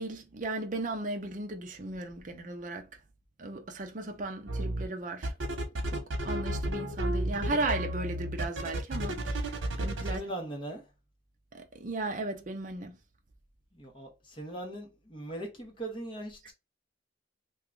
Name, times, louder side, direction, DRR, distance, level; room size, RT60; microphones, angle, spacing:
voice 1, 0.0-2.9 3.4-5.3 5.9-6.0 6.2-10.2 11.5-13.0, right 2 dB, 40° right, 0.5 m, -36 dB
sound 1, 4.5-4.8 5.2-10.2, right 1 dB, 85° right, 0.9 m, -32 dB
voice 2, 10.0-10.9 13.7-16.5, right 1 dB, 25° left, 1.0 m, -40 dB
2.8 x 2.3 x 3.7 m
head